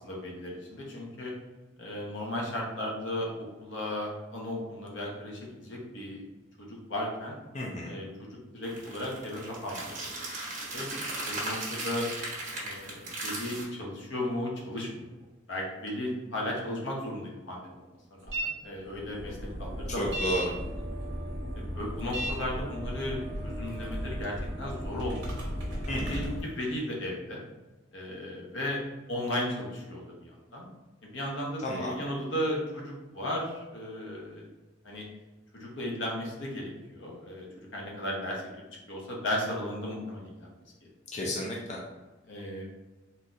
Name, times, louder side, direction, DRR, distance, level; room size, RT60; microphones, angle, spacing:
voice 1, 0.0-1.3 1.8-3.3 3.6-6.2 6.6-7.4 7.8-10.2 10.7-10.9 11.3-12.1 12.5-15.1 15.5-17.8 18.2-20.1 21.6-25.2 25.9-27.4 27.9-28.8 29.1-30.7 31.0-34.5 34.8-35.0 35.5-38.6 38.9-40.5 41.2-41.3 42.3-42.7, left 1 dB, 70° left, -2 dB, 0.9 m, -35 dB
voice 2, 7.5-8.0 20.0-20.5 25.9-26.2 31.6-32.0 41.1-41.8, equal, 35° left, -2 dB, 0.5 m, -32 dB
sound 1, 8.6-13.6, right 2 dB, 40° right, 1.2 m, -37 dB
sound 2, 18.3-18.5 18.8-26.4, equal, 65° right, 0.9 m, -35 dB
4.0 x 2.7 x 2.4 m, 1.2 s
head